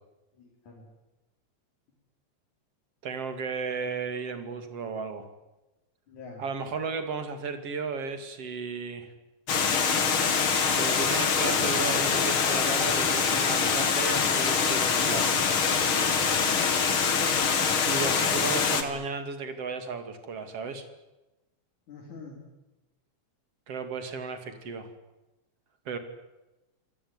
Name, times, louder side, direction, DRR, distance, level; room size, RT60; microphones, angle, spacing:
voice 1, 0.4-0.8 6.1-6.4 18.2-18.8 21.9-22.4, left 3 dB, 75° left, -3 dB, 5.8 m, -45 dB
voice 2, 3.0-5.3 6.4-9.1 10.7-15.4 17.8-20.9 23.7-24.9 25.8-26.0, right 4 dB, 55° right, 8 dB, 3.4 m, -34 dB
Water, 9.5-18.8, left 6 dB, 45° left, 2.7 m, -24 dB
26.0 x 18.5 x 9.6 m, 1.0 s
omnidirectional pair, 3.4 m